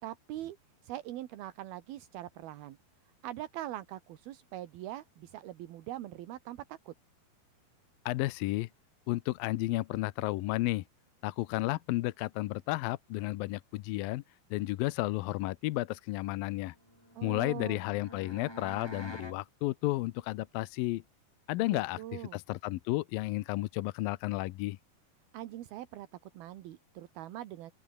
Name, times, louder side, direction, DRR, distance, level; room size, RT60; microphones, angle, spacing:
voice 1, 0.0-0.6 0.8-2.8 3.2-6.9 17.1-17.8 21.7-22.4 25.3-27.7, right 14 dB, 75° right, 3.2 m, -42 dB
voice 2, 8.1-8.7 9.1-10.8 11.2-14.2 14.5-16.8 17.2-21.0 21.5-24.8, left 18 dB, 75° left, 2.3 m, -32 dB
sound 1, 16.8-19.4, left 1 dB, 5° left, 3.9 m, -47 dB
open air
omnidirectional pair, 4.4 m